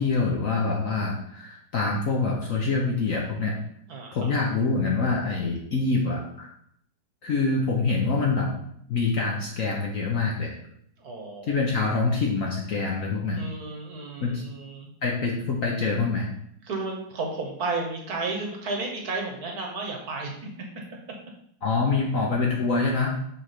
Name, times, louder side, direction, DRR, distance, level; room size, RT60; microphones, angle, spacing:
voice 1, 0.0-3.6 4.1-6.5 7.2-8.5 8.9-10.5 11.5-13.4 14.2-14.4 15.0-16.3 21.6-23.1, left 3 dB, 60° left, -1 dB, 0.9 m, -25 dB
voice 2, 3.9-4.3 11.0-11.6 13.3-14.9 16.6-20.5, right 3 dB, 60° right, 1 dB, 1.3 m, -33 dB
5.7 x 3.2 x 5.7 m, 0.71 s
omnidirectional pair, 2.1 m